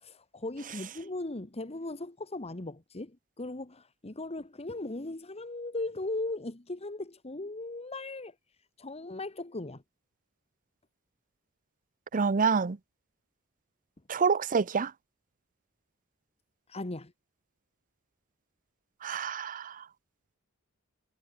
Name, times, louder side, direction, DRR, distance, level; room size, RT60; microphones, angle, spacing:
voice 1, 0.0-8.3 8.8-9.8 16.7-17.1, left 2 dB, 30° left, 1.4 m, -38 dB
voice 2, 12.1-12.8 14.1-14.9 19.0-19.8, right 5 dB, 40° right, 0.6 m, -27 dB
head